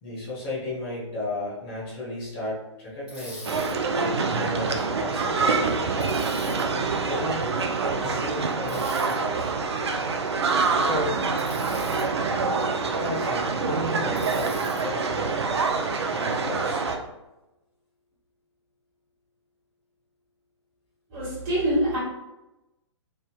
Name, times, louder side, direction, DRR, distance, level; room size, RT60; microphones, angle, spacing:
voice 1, 0.0-3.6 4.3-6.3 7.0-7.5 7.8-9.5 10.7-11.2 12.8-15.4 16.1-16.9, left 1 dB, 25° left, -7 dB, 1.2 m, -34 dB
Bicycle, 3.1-3.7 6.0-6.6 8.7-9.1 11.4-12.0 14.1-14.8, equal, 5° right, 1.0 m, -43 dB
sound 1, 3.4-17.0, right 4 dB, 60° right, 0.4 m, -26 dB
voice 2, 21.1-22.0, equal, 30° right, -7 dB, 1.5 m, -25 dB
3.2 x 2.7 x 2.2 m, 0.99 s
figure-of-eight pair, 125°, 16 cm